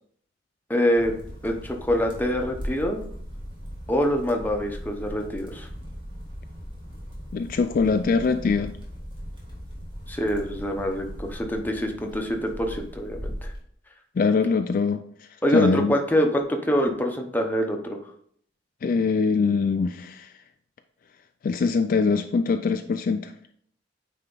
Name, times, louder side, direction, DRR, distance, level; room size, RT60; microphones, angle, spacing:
voice 1, 0.7-1.1 1.4-3.0 3.9-5.7 10.1-13.5 15.4-18.0, equal, 10° left, 3 dB, 0.8 m, -25 dB
sound 1, 0.9-13.6, equal, 25° right, 1.8 m, -38 dB
voice 2, 7.3-8.7 14.2-15.0 15.5-15.9 18.8-20.3 21.4-23.3, left 4 dB, 45° left, 8 dB, 0.3 m, -23 dB
9.0 x 3.4 x 3.9 m, 0.63 s
head